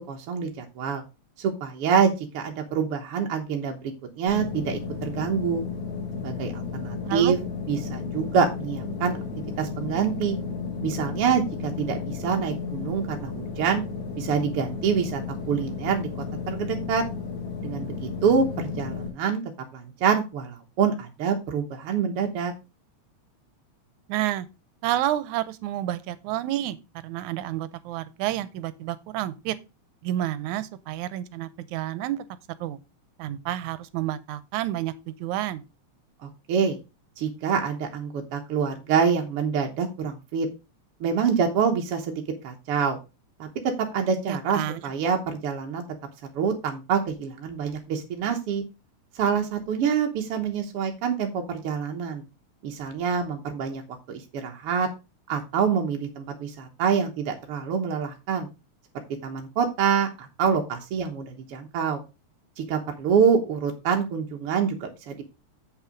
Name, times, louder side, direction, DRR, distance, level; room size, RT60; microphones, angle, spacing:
voice 1, 0.1-1.0 1.4-5.6 6.2-7.4 7.7-9.2 9.6-10.4 10.8-13.8 14.2-15.2 15.5-16.1 16.5-17.0 17.6-19.4 19.7-22.5 36.2-36.8 37.2-40.5 41.0-43.0 43.4-45.8 46.4-48.6 49.2-52.2 52.6-53.8 54.1-54.9 55.3-58.5 59.2-62.0 62.6-65.2, right 6 dB, 60° right, 1.8 m, -26 dB
sound 1, 4.3-19.1, left 5 dB, 70° left, 4.7 m, -33 dB
voice 2, 24.1-24.5 24.8-26.8 27.0-29.6 30.0-32.3 32.6-32.8 33.2-35.6 44.3-44.8, right 13 dB, 85° right, 2.1 m, -29 dB
7.8 x 5.8 x 5.1 m
omnidirectional pair, 3.3 m